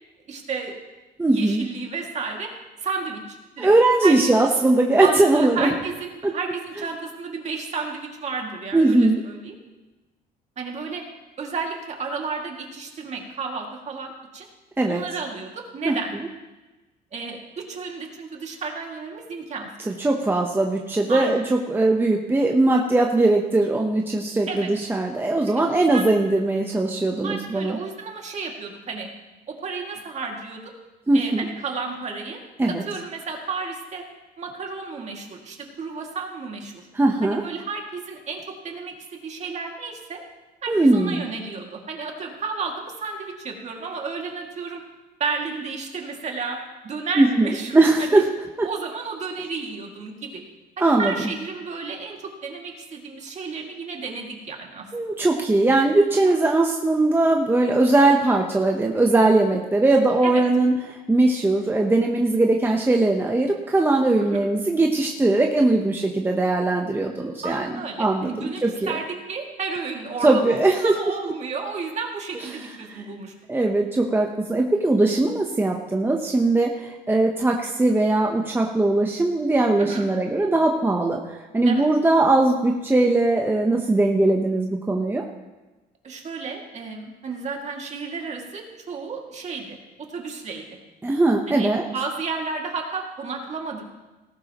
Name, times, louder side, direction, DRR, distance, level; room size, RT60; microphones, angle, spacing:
voice 1, 0.3-0.7 1.3-2.5 2.8-3.7 4.0-4.3 5.0-9.6 10.6-11.0 11.4-14.5 14.9-16.1 17.1-19.7 21.1-21.4 24.5-24.7 25.5-26.1 27.2-29.1 29.5-30.6 31.1-32.4 32.7-34.0 34.4-36.9 37.2-40.2 40.6-44.8 45.2-46.6 46.8-48.2 48.6-50.4 50.8-54.8 56.1-56.4 60.2-60.4 64.2-64.5 67.4-73.3 79.8-80.1 81.7-81.9 86.0-89.8 90.1-90.8 91.5-94.0, right 4 dB, 40° right, 1 dB, 2.3 m, -32 dB
voice 2, 1.2-1.6 3.6-5.7 6.2-6.3 8.7-9.2 14.8-15.0 15.8-15.9 19.9-27.8 31.1-31.5 32.6-32.8 36.9-37.4 40.7-41.2 47.2-48.2 48.6-48.7 50.8-51.1 54.9-69.0 70.2-70.9 72.3-72.4 72.8-73.0 73.5-85.2 91.0-91.8, right 2 dB, 15° right, 1 dB, 1.0 m, -20 dB
18.0 x 12.0 x 3.1 m, 1.1 s
cardioid pair, 110°, 17 cm